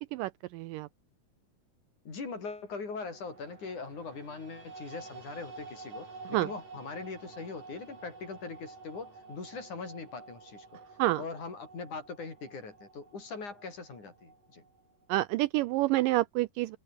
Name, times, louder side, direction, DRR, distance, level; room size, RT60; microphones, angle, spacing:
voice 1, 0.1-0.9 6.3-6.5 11.0-11.2 15.1-16.8, right 17 dB, 85° right, 1.9 m, -28 dB
voice 2, 2.1-10.8 11.2-14.6, left 4 dB, 50° left, 7.0 m, -41 dB
sound 1, 2.9-15.1, right 3 dB, 55° right, 8.9 m, -50 dB
omnidirectional pair, 4.4 m